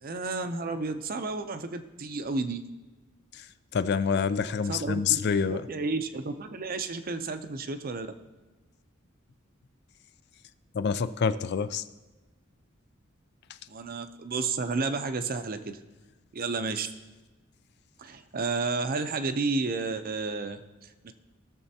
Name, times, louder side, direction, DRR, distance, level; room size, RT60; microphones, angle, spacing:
voice 1, 0.0-2.6 4.7-5.2 5.5-8.1 13.7-15.8 16.3-16.9 18.0-20.6 21.0-21.1, right 3 dB, 45° right, 9 dB, 0.6 m, -31 dB
voice 2, 3.7-5.7 10.7-11.8, left 6 dB, 55° left, 13 dB, 0.4 m, -27 dB
17.5 x 6.9 x 2.8 m, 1.2 s
head